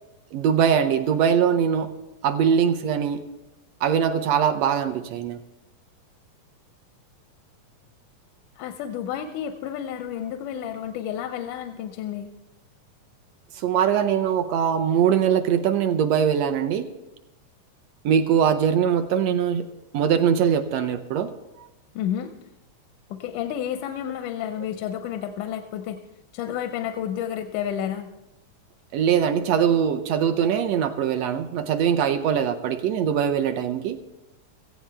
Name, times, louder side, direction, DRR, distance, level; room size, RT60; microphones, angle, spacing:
voice 1, 0.3-1.9 2.2-3.2 3.8-5.4 13.6-16.9 18.0-19.7 19.9-21.3 28.9-34.0, right 8 dB, 75° right, 9 dB, 1.6 m, -22 dB
voice 2, 8.6-12.3 22.0-22.3 23.1-26.0 26.3-28.1, left 10 dB, 90° left, 7 dB, 2.2 m, -31 dB
17.5 x 15.0 x 3.4 m, 0.94 s
omnidirectional pair, 3.5 m